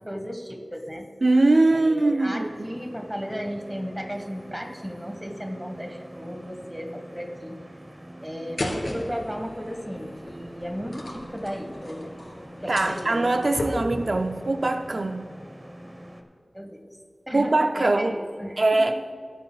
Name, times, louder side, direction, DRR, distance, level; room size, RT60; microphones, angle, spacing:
voice 1, 0.0-1.1 1.7-7.6 8.2-12.1 12.6-13.3 13.9-14.1 16.5-16.9 17.3-19.0, equal, 10° right, 1.5 m, -35 dB
voice 2, 1.2-2.5 12.7-15.3 17.3-18.2 18.6-18.9, right 2 dB, 70° right, 0.4 m, -22 dB
sound 1, 2.4-16.2, equal, 30° right, 1.0 m, -44 dB
sound 2, 8.6-14.3, left 1 dB, 80° left, 2.5 m, -36 dB
19.0 x 9.5 x 2.3 m
wide cardioid pair, 60°, 0 cm